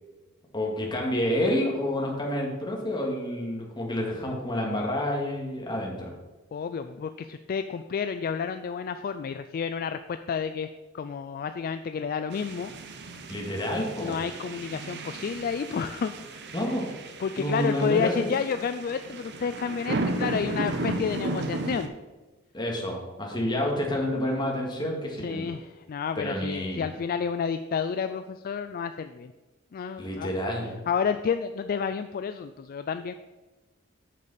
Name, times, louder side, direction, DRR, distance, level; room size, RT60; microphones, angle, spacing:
voice 1, 0.5-6.1 13.3-14.2 16.5-16.9 17.4-18.1 22.5-25.4 26.2-26.8 30.0-30.7, left 1 dB, 20° left, -1 dB, 1.9 m, -29 dB
voice 2, 6.5-10.7 10.9-12.7 14.0-16.5 17.2-21.9 25.2-29.3 29.7-33.1, left 6 dB, 45° left, 10 dB, 0.3 m, -30 dB
sound 1, 12.3-21.9, right 2 dB, 55° right, 0.8 m, -34 dB
8.3 x 7.0 x 4.2 m, 1.2 s
head